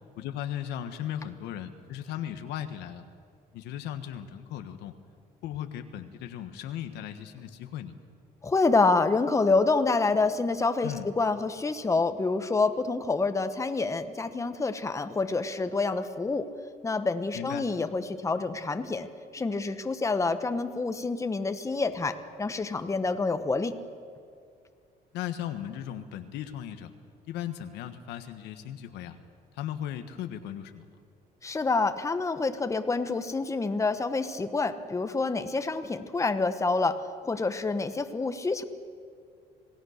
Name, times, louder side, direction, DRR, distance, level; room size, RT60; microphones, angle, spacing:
voice 1, 0.2-3.0 3.5-4.9 5.4-7.9 10.8-11.1 17.3-17.7 25.1-26.9 27.3-29.2 29.5-30.8, left 10 dB, 85° left, 8 dB, 1.4 m, -37 dB
voice 2, 8.4-16.5 16.8-19.1 19.3-23.7 31.4-38.6, left 3 dB, 20° left, 9 dB, 1.2 m, -27 dB
27.0 x 17.0 x 6.6 m, 2.3 s
cardioid pair, 110°, 17 cm